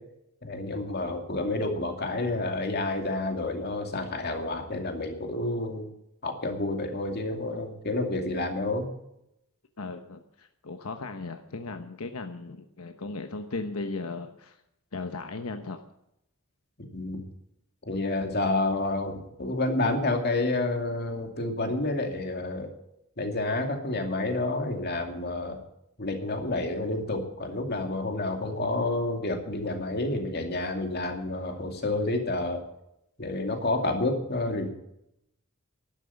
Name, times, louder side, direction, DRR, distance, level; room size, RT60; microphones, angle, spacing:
voice 1, 0.4-5.9 6.2-8.9 16.9-17.2 17.9-22.7 23.2-25.6 26.0-32.6 33.2-34.7, left 2 dB, 50° left, 4 dB, 2.5 m, -29 dB
voice 2, 9.8-14.6 14.9-15.8, left 3 dB, 80° left, 7 dB, 1.0 m, -37 dB
12.0 x 11.5 x 7.1 m, 0.81 s
head